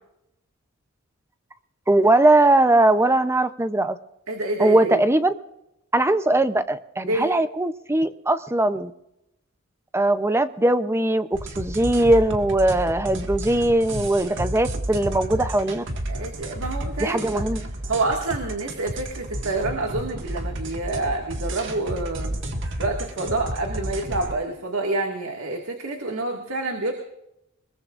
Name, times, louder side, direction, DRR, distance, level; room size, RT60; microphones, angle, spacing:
voice 1, 1.9-4.0 4.6-5.3 5.9-8.9 9.9-15.8 17.0-17.6, right 1 dB, 10° right, 11 dB, 0.6 m, -20 dB
voice 2, 4.3-5.0 7.1-7.3 15.4-15.5 16.1-17.4 17.9-22.4 22.8-26.9, right 2 dB, 85° right, 1 dB, 2.0 m, -28 dB
sound 1, 11.3-24.4, right 1 dB, 60° right, 1.8 m, -31 dB
23.5 x 21.5 x 2.5 m, 0.84 s
head